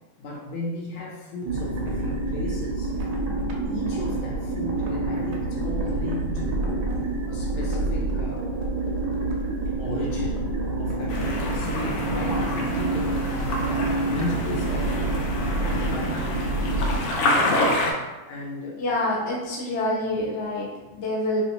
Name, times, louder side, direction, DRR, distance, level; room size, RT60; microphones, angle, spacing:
voice 1, 0.2-3.0 3.7-6.9 7.3-8.6 9.7-10.5 10.8-13.2 13.6-16.3 18.3-18.8, left 2 dB, 75° left, -2 dB, 1.5 m, -35 dB
sound 1, 1.5-17.0, right 2 dB, 70° right, 1.0 m, -27 dB
sound 2, 11.1-17.9, left 1 dB, 90° left, 1.6 m, -27 dB
voice 2, 18.8-21.4, left 1 dB, 55° left, -5 dB, 0.7 m, -27 dB
3.5 x 3.0 x 2.8 m, 1.2 s
omnidirectional pair, 2.4 m